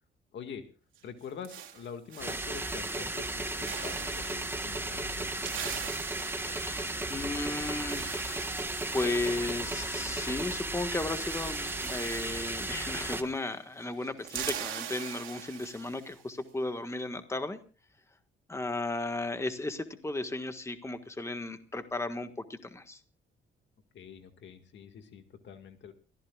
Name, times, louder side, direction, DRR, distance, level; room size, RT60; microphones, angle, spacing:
voice 1, 0.3-0.7 1.0-5.3 23.9-25.9, left 7 dB, 65° left, 8 dB, 1.9 m, -45 dB
sound 1, 0.9-2.9 3.2-3.4 3.6-4.5 5.1-10.6 10.8-10.9 11.1-13.5 13.8-16.2, right 10 dB, 80° right, 2.7 m, -43 dB
sound 2, 2.2-13.2, right 2 dB, 10° right, 1.5 m, -35 dB
sound 3, 4.1-13.3, left 1 dB, 45° left, 5.7 m, -53 dB
voice 2, 6.2-8.6 8.9-17.6 18.5-23.0, left 2 dB, 15° left, 8 dB, 1.5 m, -35 dB
29.5 x 15.0 x 2.4 m, 0.36 s
cardioid pair, 90°, 20 cm